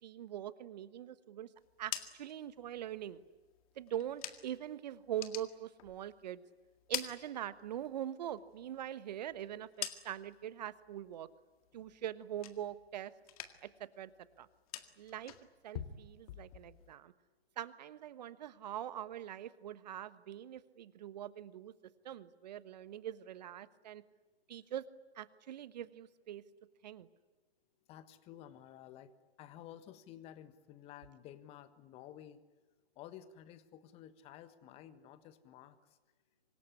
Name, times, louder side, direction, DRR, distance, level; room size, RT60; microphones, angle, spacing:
voice 1, 0.0-1.5 1.8-3.2 3.8-6.4 6.9-11.3 11.7-13.1 13.6-14.1 14.4-14.5 15.0-15.3 15.6-17.1 17.6-21.7 22.0-24.0 24.5-24.8 25.1-26.4 26.8-27.1, right 11 dB, 40° right, 15 dB, 1.2 m, -43 dB
sound 1, 1.6-4.7 5.0-6.3 6.6-8.0 8.3-10.4 10.8-11.3 11.6-12.9 13.2-13.8 14.1-16.9, left 11 dB, 35° left, 2.0 m, -46 dB
voice 2, 27.9-29.1 29.4-32.4 32.9-36.0, left 11 dB, 20° left, 13 dB, 1.4 m, -53 dB
25.5 x 20.5 x 9.9 m, 1.2 s
figure-of-eight pair, 130°, 31 cm